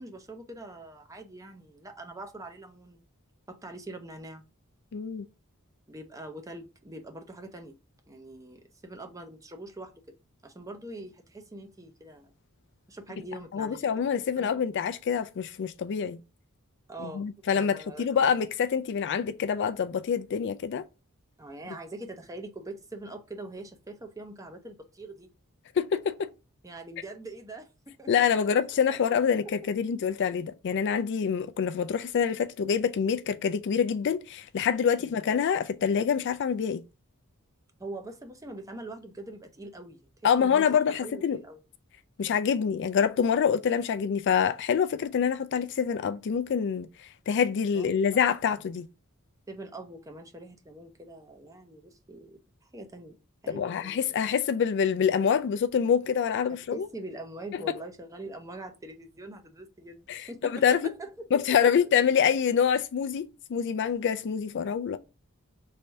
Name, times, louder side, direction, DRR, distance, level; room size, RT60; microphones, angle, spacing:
voice 1, 0.0-3.0 3.5-4.4 5.9-7.8 8.1-10.0 10.4-12.3 12.9-13.8 14.4-14.6 16.9-17.3 17.5-18.1 21.4-25.3 26.6-28.5 28.9-29.0 29.4-29.5 35.0-35.2 37.8-41.6 47.7-48.6 49.5-54.1 56.5-61.7, right 2 dB, 15° right, 0.5 m, -43 dB
voice 2, 4.9-5.3 13.5-16.2 17.0-20.8 25.8-26.1 28.1-36.8 40.2-41.4 42.2-46.9 47.3-48.9 53.5-56.8 60.1-60.8 61.3-63.2 63.5-65.0, left 7 dB, 55° left, 0.4 m, -26 dB
3.2 x 2.6 x 4.4 m
head